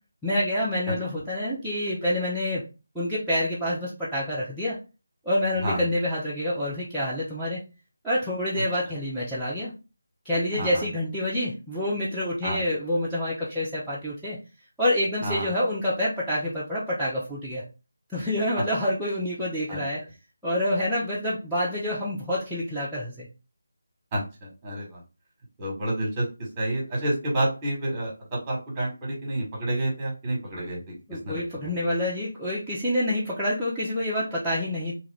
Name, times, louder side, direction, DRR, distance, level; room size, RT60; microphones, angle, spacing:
voice 1, 0.2-2.6 2.9-4.8 5.2-7.6 8.0-9.7 10.2-14.4 14.8-17.6 18.1-20.0 20.4-23.3 31.1-35.0, left 1 dB, ahead, -13 dB, 0.6 m, -27 dB
voice 2, 10.5-10.8 12.4-12.6 15.2-15.5 19.7-19.8 24.1-25.0 25.6-31.8, right 1 dB, 15° right, -2 dB, 1.3 m, -29 dB
2.8 x 2.4 x 3.2 m, 0.30 s
figure-of-eight pair, 160°, 0 cm